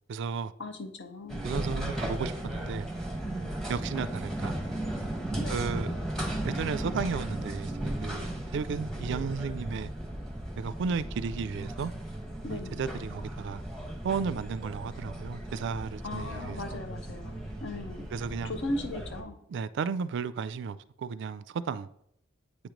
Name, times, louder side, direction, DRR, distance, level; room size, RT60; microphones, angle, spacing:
voice 1, 0.1-0.5 1.4-2.9 3.7-4.5 5.5-5.9 6.4-9.9 10.6-11.9 12.5-13.6 14.0-16.8 18.1-18.5 19.5-21.9, right 5 dB, 60° right, 0.3 m, -34 dB
voice 2, 0.6-1.5 5.4-5.7 12.4-12.8 16.0-18.1 18.4-19.3, left 1 dB, 65° left, 0.8 m, -37 dB
sound 1, 1.3-19.2, right 1 dB, ahead, 1.0 m, -36 dB
8.4 x 3.1 x 5.0 m
head